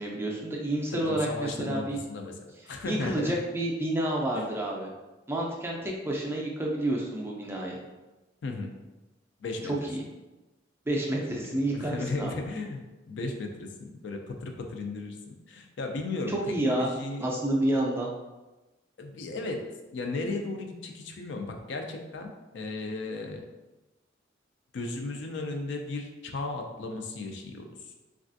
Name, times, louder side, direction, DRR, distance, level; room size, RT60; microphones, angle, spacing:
voice 1, 0.0-2.0 2.8-4.9 5.3-7.8 9.6-10.0 10.9-12.3 16.3-16.9 17.2-18.1, right 1 dB, 10° right, -2 dB, 0.4 m, -29 dB
voice 2, 0.9-2.3 2.7-3.3 4.3-4.5 8.4-8.7 9.4-9.9 11.3-15.2 15.5-17.3 19.0-23.5 24.7-27.7, left 3 dB, 65° left, 3 dB, 0.4 m, -35 dB
3.3 x 2.4 x 2.5 m, 1.1 s
head